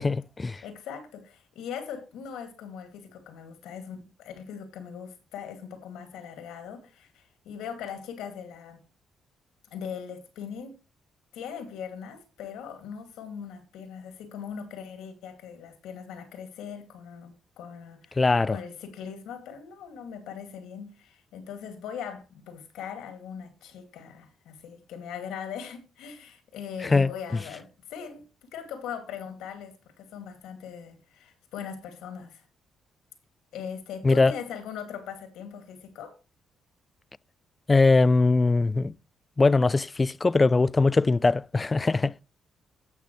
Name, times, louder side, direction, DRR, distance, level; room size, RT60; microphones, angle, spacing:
voice 1, 0.0-0.6 18.2-18.6 26.8-27.1 34.0-34.3 37.7-38.9 39.4-42.2, left 3 dB, 25° left, 0.4 m, -21 dB
voice 2, 0.6-8.8 9.7-10.8 11.3-32.4 33.5-36.2, left 7 dB, 90° left, 2.4 m, -40 dB
17.0 x 5.9 x 3.2 m
cardioid pair, 90°, 0 cm